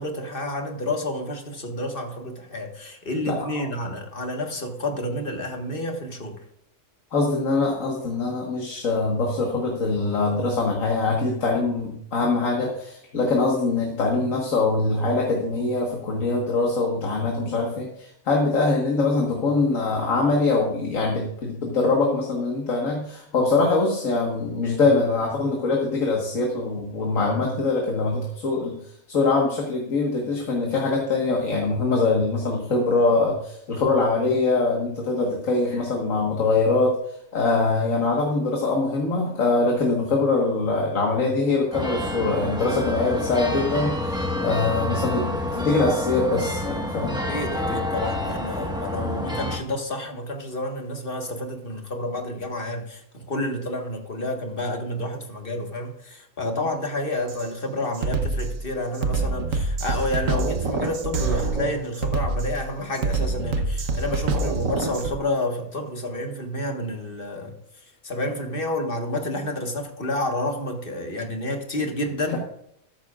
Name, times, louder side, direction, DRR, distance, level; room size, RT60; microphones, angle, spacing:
voice 1, 0.0-6.4 47.3-67.6 68.0-72.4, left 1 dB, 40° left, 3 dB, 1.6 m, -29 dB
voice 2, 3.3-3.6 7.1-28.8 29.1-36.9 37.3-47.2, left 3 dB, 70° left, 0 dB, 1.9 m, -23 dB
sound 1, 41.7-49.6, left 1 dB, 5° right, 1.2 m, -28 dB
Drum kit, 57.3-57.5 57.9-65.1, right 3 dB, 70° right, 1.3 m, -26 dB
13.5 x 12.0 x 2.4 m, 0.71 s
omnidirectional pair, 1.5 m